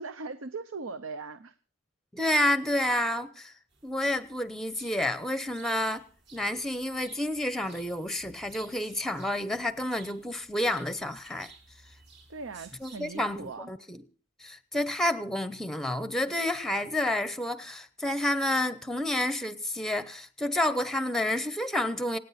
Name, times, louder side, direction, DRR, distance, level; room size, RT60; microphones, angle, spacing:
voice 1, 0.0-1.5 12.3-13.7, right 4 dB, 80° right, 0.7 m, -39 dB
voice 2, 2.1-3.5 3.8-6.1 6.3-11.5 12.8-14.0 14.4-22.2, left 1 dB, ahead, 0.7 m, -29 dB
sound 1, 3.7-13.6, right 4 dB, 55° right, 4.8 m, -56 dB
27.0 x 9.3 x 4.1 m
head